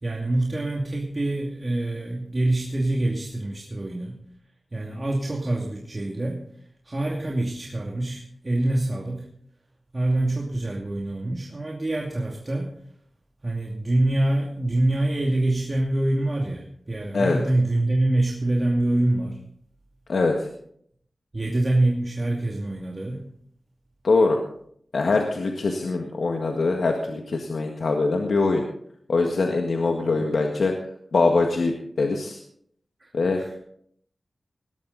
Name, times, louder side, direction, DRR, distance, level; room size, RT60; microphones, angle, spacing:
voice 1, 0.0-4.2 4.7-6.4 6.8-9.3 9.9-12.7 13.4-19.4 21.3-23.3 30.1-30.4 33.0-33.7, right 1 dB, 35° right, -2 dB, 2.5 m, -25 dB
voice 2, 20.1-20.5 24.0-24.4 24.9-28.6 29.1-30.7 31.1-32.4 33.1-33.4, left 3 dB, 80° left, 2 dB, 1.7 m, -23 dB
19.0 x 12.5 x 4.1 m, 0.66 s
wide cardioid pair, 60°, 0 cm